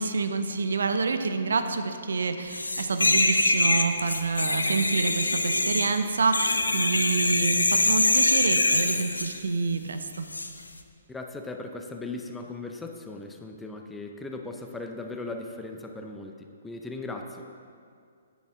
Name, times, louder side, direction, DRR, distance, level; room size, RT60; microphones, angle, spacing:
voice 1, 0.0-10.3, right 4 dB, 70° right, 8 dB, 0.6 m, -27 dB
sound 1, 2.5-9.4 10.3-10.5, left 2 dB, 85° left, 0.6 m, -24 dB
voice 2, 11.1-17.6, left 2 dB, 5° left, 4 dB, 0.6 m, -38 dB
9.6 x 9.3 x 3.7 m, 2.3 s
figure-of-eight pair, 125°, 0 cm